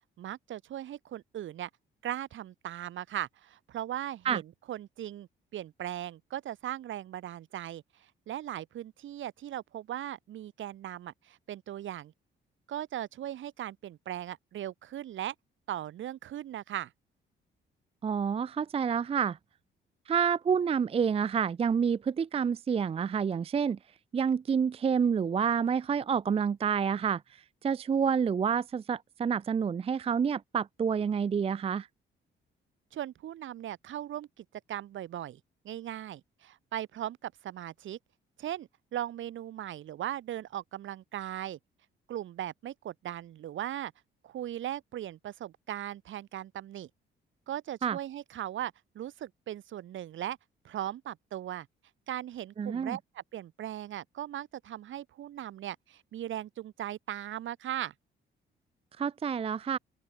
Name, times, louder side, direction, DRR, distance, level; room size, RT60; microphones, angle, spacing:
voice 1, 0.2-1.7 2.0-12.1 12.7-15.3 15.7-16.9 32.9-38.0 38.4-41.6 42.1-43.9 44.2-46.9 47.5-50.4 50.6-51.7 52.1-57.9, right 12 dB, 75° right, 6.8 m, -38 dB
voice 2, 18.0-19.4 20.1-23.8 24.1-27.2 27.6-31.9 47.8-48.0 52.6-53.0 59.0-59.8, right 7 dB, 30° right, 0.5 m, -28 dB
open air
cardioid pair, 90°, 20 cm